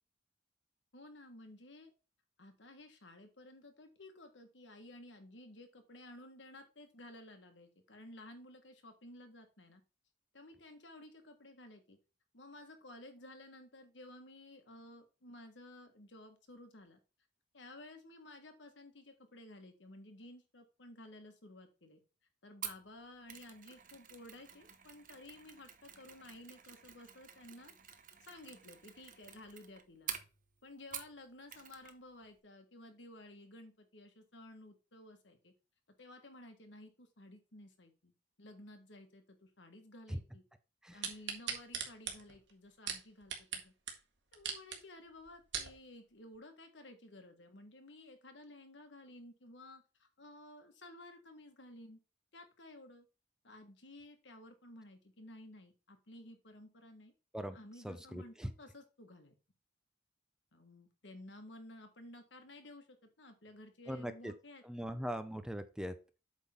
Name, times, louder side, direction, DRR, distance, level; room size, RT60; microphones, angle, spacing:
voice 1, 0.9-1.9 2.4-9.8 10.3-12.0 12.3-17.0 17.5-22.0 22.4-27.7 28.2-30.2 30.6-35.5 36.0-40.4 40.9-43.7 44.3-52.0 52.3-53.1 53.4-57.1 57.5-59.3 60.5-62.9 63.2-64.6, left 1 dB, 80° left, 6 dB, 1.7 m, -54 dB
Mechanisms, 22.6-31.2 31.5-32.0 32.2-32.4, right 9 dB, 45° right, 0.9 m, -49 dB
sound 1, 41.0-43.6 43.9-44.0 44.3-44.8 45.3-45.7 46.3-46.4, right 7 dB, 85° right, 1.7 m, -39 dB
voice 2, 57.8-58.5 63.9-64.3 64.6-65.9, equal, 5° right, 10 dB, 0.6 m, -40 dB
8.2 x 3.7 x 5.7 m, 0.32 s
head